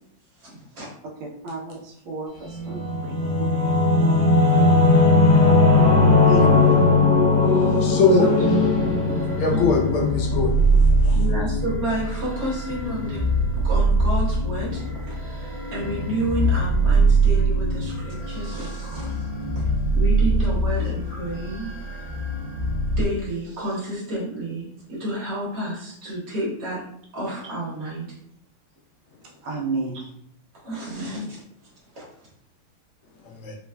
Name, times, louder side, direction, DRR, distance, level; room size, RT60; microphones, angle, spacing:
voice 1, 0.4-0.9 8.2-8.5 9.5-9.8 11.1-13.2 13.5-19.3 19.6-19.7 19.9-21.7 23.0-26.8 27.1-28.1 29.9-30.0 30.6-31.4 31.9-32.0, right 1 dB, 55° right, -6 dB, 1.8 m, -30 dB
voice 2, 1.4-3.7 6.3-7.0 29.4-30.0, right 3 dB, 75° right, -1 dB, 1.5 m, -31 dB
Singing / Musical instrument, 2.5-11.7, left 3 dB, 40° left, 0.8 m, -18 dB
voice 3, 7.8-8.3 9.4-10.5 11.0-11.2 33.3-33.6, left 4 dB, 85° left, -1 dB, 1.6 m, -21 dB
sound 1, 8.6-23.0, right 2 dB, 40° right, 1.0 m, -23 dB
4.2 x 2.4 x 2.2 m, 0.72 s
omnidirectional pair, 2.3 m